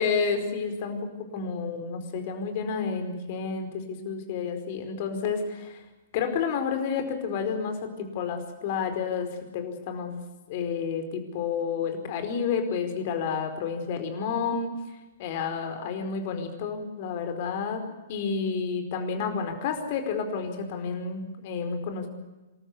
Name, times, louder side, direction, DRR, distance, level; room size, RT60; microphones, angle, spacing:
voice 1, 0.0-5.8 6.1-10.2 10.5-14.7 15.2-22.1, left 6 dB, 45° left, 7 dB, 4.7 m, -30 dB
27.5 x 13.5 x 9.7 m, 1.1 s
figure-of-eight pair, 115°, 0 cm